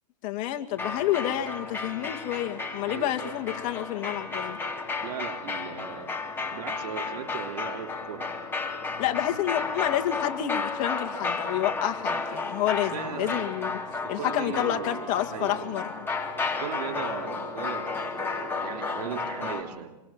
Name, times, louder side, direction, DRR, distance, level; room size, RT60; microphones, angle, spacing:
voice 1, 0.2-4.6 9.0-13.7 14.1-15.8, left 12 dB, 40° left, 5 dB, 2.2 m, -29 dB
sound 1, 0.7-19.6, left 4 dB, 10° left, 3.5 m, -33 dB
voice 2, 2.9-3.3 5.0-8.3 12.9-13.5 14.0-15.8 16.6-20.0, right 9 dB, 70° right, 5 dB, 3.1 m, -38 dB
26.5 x 23.5 x 7.5 m, 1.0 s
hypercardioid pair, 125°, 21 cm